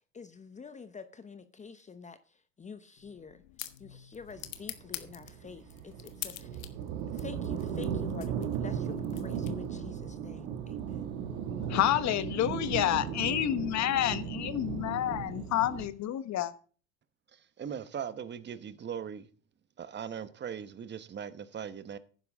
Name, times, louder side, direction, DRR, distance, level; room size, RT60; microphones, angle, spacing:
voice 1, 0.1-2.2 2.6-3.4 3.8-6.5 7.1-11.1, left 5 dB, 20° left, 0.9 m, -47 dB
sound 1, 3.0-9.9, left 13 dB, 80° left, 1.5 m, -46 dB
sound 2, 4.3-15.9, right 8 dB, 65° right, 2.1 m, -36 dB
voice 2, 11.6-16.5, left 12 dB, 45° left, 1.2 m, -29 dB
voice 3, 17.6-19.3 19.8-22.0, right 8 dB, 30° right, 1.2 m, -39 dB
12.0 x 10.0 x 3.6 m
hypercardioid pair, 90°, 39 cm